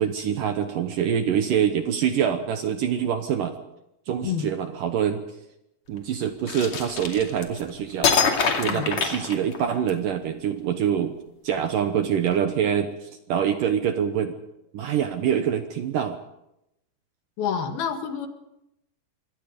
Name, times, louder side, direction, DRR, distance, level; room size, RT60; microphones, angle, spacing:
voice 1, 0.0-3.5 4.1-5.2 5.9-8.1 8.6-11.2 11.4-14.3 14.7-16.2, right 8 dB, 70° right, 7 dB, 2.2 m, -25 dB
sound 1, 6.5-7.6 8.0-9.9, left 5 dB, 45° left, 3.3 m, -24 dB
voice 2, 17.4-18.3, left 7 dB, 65° left, 6 dB, 3.5 m, -28 dB
26.0 x 24.0 x 5.3 m, 0.86 s
omnidirectional pair, 4.9 m